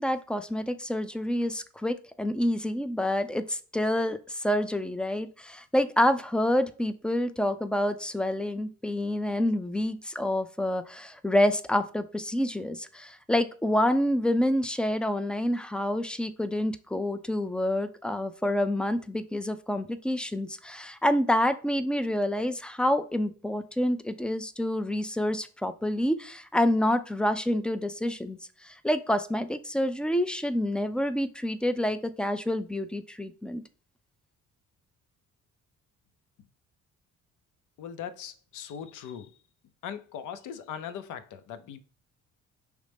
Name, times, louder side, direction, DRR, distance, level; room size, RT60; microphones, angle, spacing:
voice 1, 0.0-33.6, left 1 dB, 5° left, 0.3 m, -28 dB
voice 2, 37.8-39.3 39.8-41.8, left 8 dB, 85° left, 0.6 m, -39 dB
5.0 x 3.2 x 3.3 m
cardioid pair, 90°, 30 cm